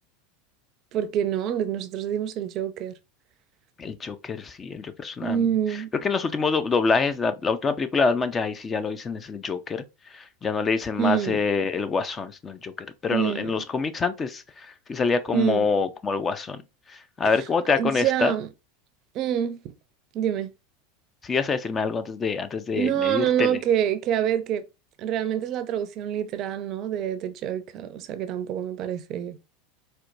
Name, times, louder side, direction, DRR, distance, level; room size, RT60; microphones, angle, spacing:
voice 1, 0.9-2.9 5.2-5.9 11.0-11.4 13.1-13.5 15.3-15.7 17.8-18.5 19.1-19.6 20.1-20.5 22.7-24.6 25.0-29.4, right 9 dB, 50° right, 0.5 m, -26 dB
voice 2, 3.8-9.8 10.1-12.7 13.0-16.6 16.9-18.3 21.2-23.6, left 4 dB, 25° left, 0.4 m, -26 dB
4.3 x 2.2 x 2.5 m
hypercardioid pair, 100°, 0 cm